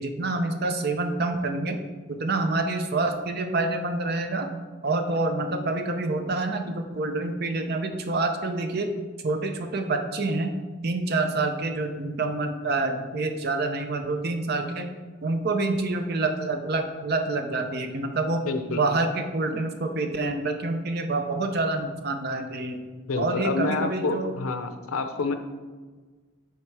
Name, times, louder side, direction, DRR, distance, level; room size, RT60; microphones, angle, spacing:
voice 1, 0.0-1.8 2.1-4.5 4.8-8.9 9.2-10.5 10.8-14.9 15.2-22.8 23.2-24.3, right 2 dB, 50° right, 6 dB, 0.6 m, -27 dB
voice 2, 18.5-18.8 23.1-25.3, left 3 dB, 85° left, 8 dB, 0.6 m, -28 dB
7.9 x 3.3 x 4.7 m, 1.4 s
head